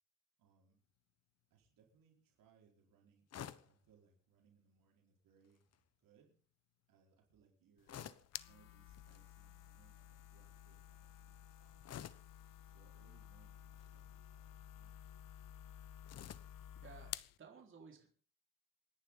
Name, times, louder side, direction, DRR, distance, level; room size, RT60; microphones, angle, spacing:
voice 1, 0.4-0.8 1.5-6.4 6.9-7.9 8.5-11.8 12.7-15.2, right 6 dB, 85° right, 0 dB, 4.7 m, -71 dB
sound 1, 3.3-3.8 5.4-5.8 7.9-8.4 9.0-9.2 11.8-12.3 13.6-14.1 16.1-16.6, left 9 dB, 50° left, 1.0 m, -51 dB
sound 2, 7.8-17.4, left 11 dB, 75° left, 0.8 m, -53 dB
voice 2, 16.4-18.1, right 5 dB, 40° right, 0 dB, 4.4 m, -58 dB
28.0 x 10.5 x 3.9 m, 0.41 s
cardioid pair, 145°, 33 cm